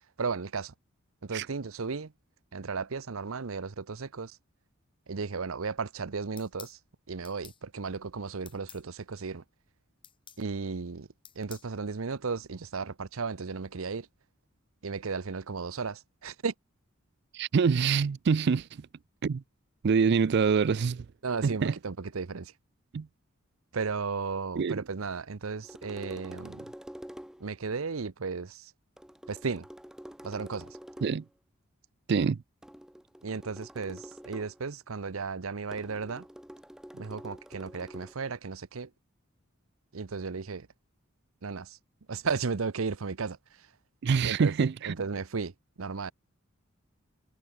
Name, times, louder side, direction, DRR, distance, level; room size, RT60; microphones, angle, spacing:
voice 1, 0.2-0.7 1.2-2.1 2.5-4.4 5.1-6.8 7.1-9.4 10.4-11.1 11.4-14.1 14.8-16.5 21.2-22.5 23.7-26.7 27.4-28.7 29.3-29.7 30.2-30.8 33.2-36.3 36.9-38.9 39.9-40.7 41.4-41.8 42.1-43.7 44.2-44.5 44.8-45.5 45.8-46.1, right 4 dB, 85° right, 0.8 m, -35 dB
sound 1, 6.4-6.8 7.2-7.6 8.5-8.8 10.0-10.4 11.2-11.7, left 8 dB, 25° left, 2.2 m, -49 dB
voice 2, 17.3-18.7 19.2-19.4 19.8-21.0 21.4-21.7 22.9-23.1 24.6-24.8 31.0-31.2 32.1-32.4 44.0-45.0, right 5 dB, 55° right, 0.4 m, -25 dB
sound 2, 25.6-27.5 29.0-31.3 32.6-34.6 35.7-38.1, equal, 5° right, 0.6 m, -47 dB
head